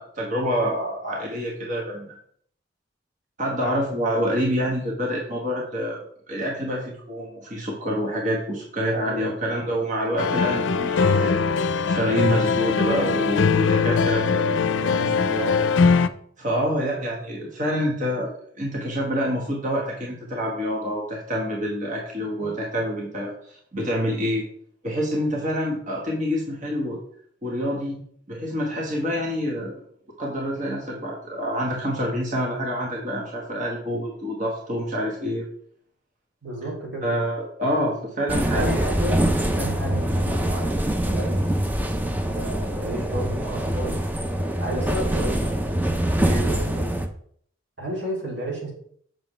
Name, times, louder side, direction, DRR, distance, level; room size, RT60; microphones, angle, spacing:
voice 1, 0.0-2.0 3.4-6.0 6.3-11.4 11.8-14.2 16.4-24.4 24.8-27.0 27.4-28.0 28.3-29.8 30.2-35.5 37.0-38.8 46.2-46.5, equal, 45° right, -2 dB, 1.4 m, -27 dB
voice 2, 8.9-9.3 10.7-11.2 13.8-15.7 22.4-22.5 36.4-37.0 38.6-39.2 39.6-41.6 42.2-44.0 44.6-45.6 46.3-46.9 47.8-48.7, right 1 dB, 90° right, -3 dB, 2.9 m, -32 dB
sound 1, 10.2-16.1, left 5 dB, 85° left, 0.4 m, -21 dB
sound 2, 38.3-47.1, right 1 dB, 10° right, 0.5 m, -24 dB
7.1 x 6.1 x 3.3 m, 0.62 s
head